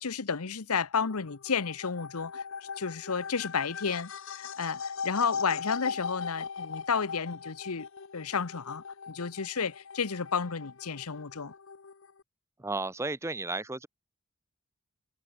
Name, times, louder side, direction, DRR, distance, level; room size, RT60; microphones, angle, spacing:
voice 1, 0.0-2.4 2.8-7.9 8.1-11.5, left 5 dB, 85° left, 1.0 m, -32 dB
sound 1, 0.9-12.2, left 6 dB, 60° left, 0.7 m, -40 dB
voice 2, 12.6-13.9, right 2 dB, 10° right, 0.6 m, -33 dB
head